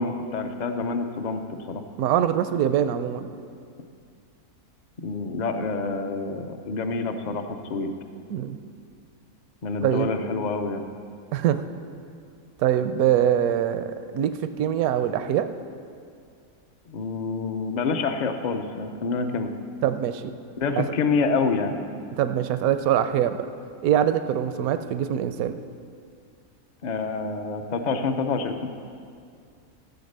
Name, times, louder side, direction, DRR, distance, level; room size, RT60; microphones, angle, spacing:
voice 1, 0.0-1.8 5.0-7.4 7.7-7.9 9.6-10.8 16.9-19.5 20.6-21.7 26.8-28.7, left 4 dB, 45° left, 7 dB, 0.6 m, -27 dB
voice 2, 2.0-3.3 8.3-8.6 9.8-10.1 11.3-11.6 12.6-14.3 14.6-15.5 19.8-20.2 20.8-20.9 22.2-23.4 23.8-25.6, right 10 dB, 75° right, 10 dB, 1.1 m, -23 dB
13.5 x 7.8 x 6.7 m, 2.3 s
omnidirectional pair, 1.6 m